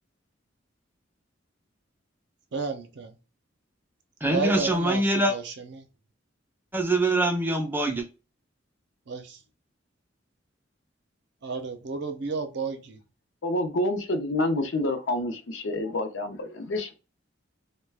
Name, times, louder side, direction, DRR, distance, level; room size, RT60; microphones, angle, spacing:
voice 1, 2.5-3.1 4.3-5.9 9.1-9.4 11.4-13.0, right 4 dB, 65° right, 0.6 m, -32 dB
voice 2, 4.2-5.3 6.7-8.1, right 1 dB, 10° right, 0.5 m, -24 dB
voice 3, 13.4-16.9, left 1 dB, 70° left, 0.6 m, -28 dB
2.3 x 2.2 x 3.3 m
head